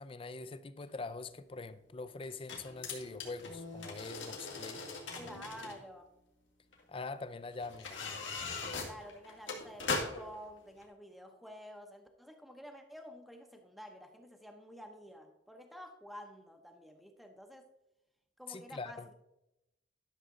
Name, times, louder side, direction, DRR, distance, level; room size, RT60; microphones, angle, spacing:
voice 1, 0.0-5.0 6.9-8.2 18.5-19.1, left 3 dB, 30° left, 0.4 m, -44 dB
sound 1, 0.8-0.9 2.2-5.8 6.7-6.8 7.6-10.4 10.8-10.9, left 4 dB, 80° left, 2.1 m, -40 dB
voice 2, 5.1-6.1 8.8-17.7 18.4-19.2, equal, ahead, 0.7 m, -50 dB
11.5 x 6.2 x 3.7 m
head